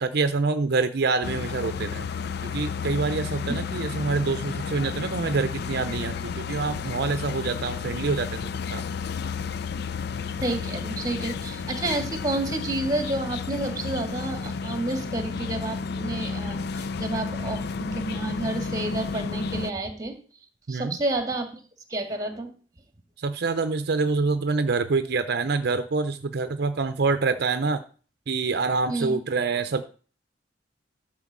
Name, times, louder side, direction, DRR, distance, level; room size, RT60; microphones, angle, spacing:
voice 1, 0.0-2.1 2.4-8.8 20.7-21.0 23.2-27.8 28.3-29.9, right 4 dB, 60° right, 10 dB, 0.6 m, -26 dB
sound 1, 1.2-19.7, left 5 dB, 60° left, 0.5 m, -32 dB
voice 2, 10.4-20.2 20.7-21.5 21.9-22.5 28.9-29.2, right 2 dB, 20° right, 6 dB, 1.9 m, -30 dB
12.5 x 4.4 x 7.4 m, 0.40 s
head